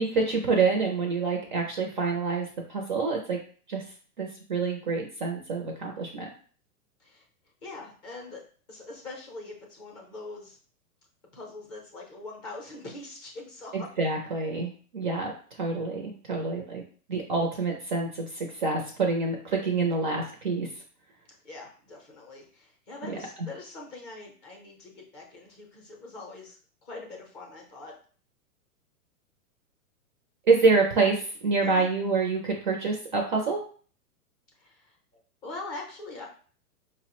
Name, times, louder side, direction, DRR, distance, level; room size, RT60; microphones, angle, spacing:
voice 1, 0.0-3.4 3.7-3.8 4.2-6.3 13.7-15.3 15.6-16.8 17.1-20.7 23.1-23.2 30.5-33.6, right 4 dB, 35° right, 1 dB, 0.4 m, -27 dB
voice 2, 7.6-8.4 8.7-10.6 11.3-13.9 21.4-27.9 31.6-31.9 34.6-35.0 35.4-36.2, left 2 dB, 20° left, -1 dB, 0.5 m, -43 dB
4.8 x 2.0 x 2.9 m, 0.43 s
hypercardioid pair, 150°, 46 cm